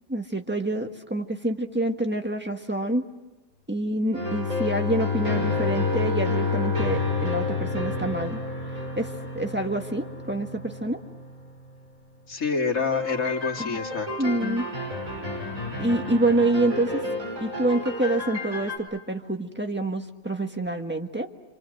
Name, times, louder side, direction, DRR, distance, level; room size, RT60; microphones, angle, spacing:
voice 1, 0.1-3.0 3.7-8.4 8.9-11.0 13.6-13.8 14.2-14.7 15.8-17.0 17.4-21.3, right 2 dB, 10° right, 4 dB, 1.5 m, -27 dB
Bowed string instrument, 4.1-8.9, left 8 dB, 30° right, 5.1 m, -28 dB
sound 1, 4.1-11.9 12.7-18.8, equal, 80° right, 6.5 m, -32 dB
voice 2, 12.3-14.3, left 4 dB, 85° left, 0 dB, 2.7 m, -27 dB
28.0 x 27.0 x 7.8 m, 1.0 s
omnidirectional pair, 1.4 m